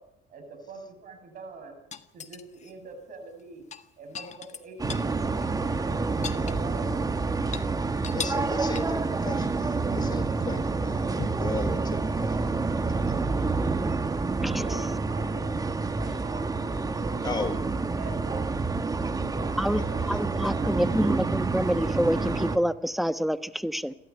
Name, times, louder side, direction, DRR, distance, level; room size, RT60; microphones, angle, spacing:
voice 1, 0.3-1.8 2.1-3.6 4.0-7.0 14.6-17.6 17.9-18.5 19.1-20.3 20.5-21.1, right 3 dB, 55° right, 5 dB, 7.6 m, -44 dB
sound 1, 1.9-2.7 3.6-5.1 5.4-5.5 5.8-7.0 7.4-7.7 8.0-8.5 8.7-9.1 11.2-11.5 13.2-13.3, left 6 dB, 45° left, 1.5 m, -38 dB
sound 2, 4.8-22.6, right 3 dB, 20° right, 1.5 m, -28 dB
voice 2, 8.1-12.4 17.2-17.6 20.1-20.5, left 4 dB, 25° left, 9 dB, 3.8 m, -36 dB
voice 3, 20.1-23.9, equal, ahead, 12 dB, 1.2 m, -27 dB
29.5 x 12.5 x 9.9 m, 0.82 s
cardioid pair, 110°, 17 cm